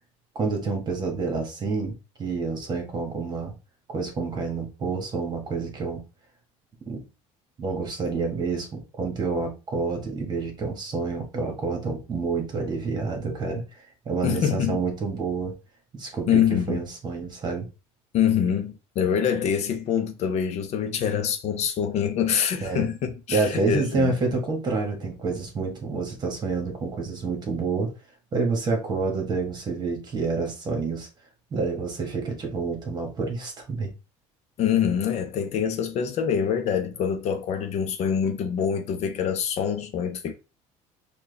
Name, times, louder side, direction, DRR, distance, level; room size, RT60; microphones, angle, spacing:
voice 1, 0.3-3.5 3.9-6.0 6.9-7.0 7.6-15.5 15.9-17.7 22.6-22.9 23.3-27.9 28.3-31.1 31.5-33.9, right 4 dB, 30° right, 1.4 m, -28 dB
voice 2, 14.2-14.8 16.3-16.8 18.1-24.1 34.6-40.3, left 8 dB, 50° left, 0.7 m, -25 dB
4.5 x 2.4 x 3.3 m
cardioid pair, 125°, 14 cm